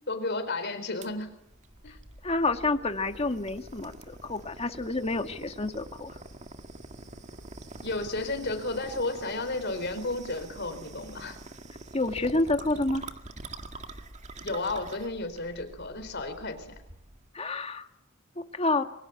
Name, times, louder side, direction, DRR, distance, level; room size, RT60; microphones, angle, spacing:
voice 1, 0.1-1.3 1.8-2.0 7.8-11.4 14.4-16.7, left 2 dB, 55° left, 8 dB, 4.5 m, -32 dB
sound 1, 1.0-17.3, right 3 dB, 35° right, 2.0 m, -46 dB
sound 2, 1.7-17.0, equal, 15° left, 6.8 m, -53 dB
voice 2, 2.2-6.2 11.9-13.0 17.3-17.9 18.4-18.8, left 2 dB, 30° left, 7 dB, 1.8 m, -29 dB
28.5 x 23.5 x 8.4 m, 0.81 s
head